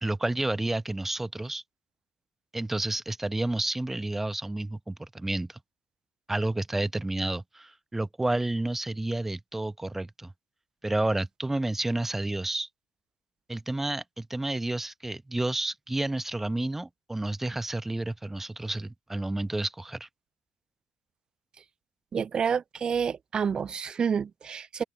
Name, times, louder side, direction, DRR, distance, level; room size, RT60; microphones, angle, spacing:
voice 1, 0.0-1.6 2.5-5.6 6.3-10.3 10.8-12.7 13.5-20.1, right 2 dB, 10° right, 1.5 m, -30 dB
voice 2, 22.1-24.8, right 6 dB, 40° right, 0.6 m, -29 dB
open air
hypercardioid pair, 55°, 2 cm